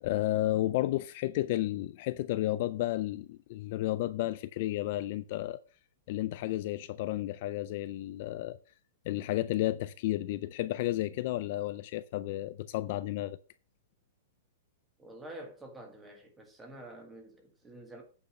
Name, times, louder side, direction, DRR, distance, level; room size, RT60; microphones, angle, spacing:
voice 1, 0.0-5.6 6.1-8.6 9.1-13.4, left 15 dB, 35° left, 0.3 m, -32 dB
voice 2, 15.0-18.0, right 1 dB, 5° right, 1.5 m, -48 dB
8.8 x 5.4 x 6.5 m
supercardioid pair, 180°, 0 cm